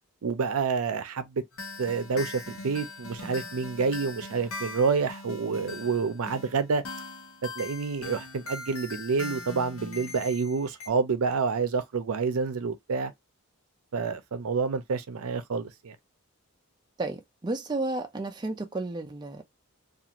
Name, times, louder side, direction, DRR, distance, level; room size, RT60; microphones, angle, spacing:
voice 1, 0.2-1.4 1.8-6.8 7.6-13.1 13.9-16.0, right 5 dB, 75° right, 0.5 m, -28 dB
sound 1, 1.5-10.9, left 2 dB, 75° left, 0.8 m, -41 dB
voice 2, 17.0-19.4, right 2 dB, 20° right, 0.4 m, -32 dB
2.5 x 2.4 x 2.8 m
head